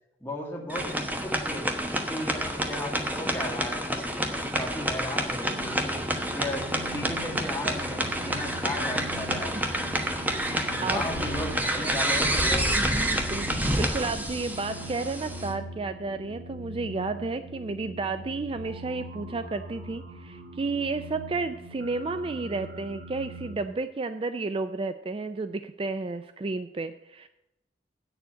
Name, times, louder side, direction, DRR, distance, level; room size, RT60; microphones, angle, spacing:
voice 1, 0.2-1.7 2.1-6.0 6.3-9.8 10.4-13.0, left 1 dB, 10° left, -1 dB, 2.1 m, -36 dB
sound 1, 0.7-15.5, right 1 dB, 10° right, 1.1 m, -29 dB
sound 2, 5.5-23.6, right 1 dB, 55° right, 1.9 m, -42 dB
voice 2, 12.7-13.5 13.8-27.3, right 3 dB, 30° right, 10 dB, 0.4 m, -32 dB
8.8 x 7.0 x 8.0 m, 0.89 s
head